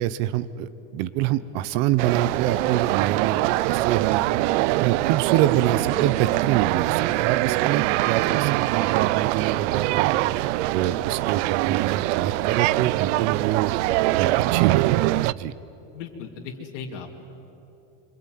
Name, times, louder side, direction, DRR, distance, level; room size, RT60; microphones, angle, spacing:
voice 1, 0.0-3.4 3.6-4.2 4.8-10.1 10.7-13.7 14.2-15.5, right 12 dB, 45° right, 15 dB, 1.0 m, -26 dB
sound 1, 2.0-15.3, right 18 dB, 80° right, 0.6 m, -23 dB
voice 2, 15.9-17.1, left 6 dB, 80° left, 0 dB, 2.8 m, -37 dB
26.0 x 24.5 x 9.3 m, 3.0 s
cardioid pair, 175°, 36 cm